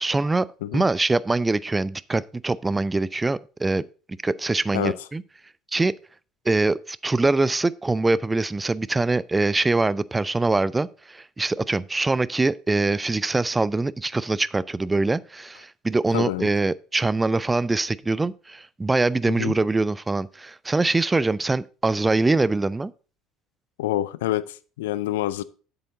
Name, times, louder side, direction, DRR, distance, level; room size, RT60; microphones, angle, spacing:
voice 1, 0.0-0.5 0.7-5.2 5.7-5.9 6.5-22.9, right 3 dB, 15° right, 0.4 m, -23 dB
voice 2, 16.1-16.5 19.3-19.5 23.8-25.4, left 14 dB, 70° left, 0.4 m, -27 dB
7.9 x 6.9 x 3.9 m
figure-of-eight pair, 60°, 0 cm